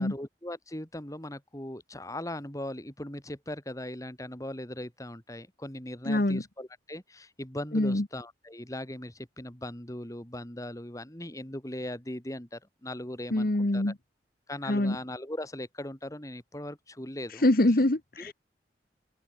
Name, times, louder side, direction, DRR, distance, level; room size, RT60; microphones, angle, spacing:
voice 1, 0.0-13.8 14.5-17.5, left 1 dB, 20° left, 2.7 m, -39 dB
voice 2, 6.1-6.4 7.7-8.0 13.3-13.9 14.7-15.0 17.4-18.3, left 1 dB, 55° left, 1.4 m, -24 dB
head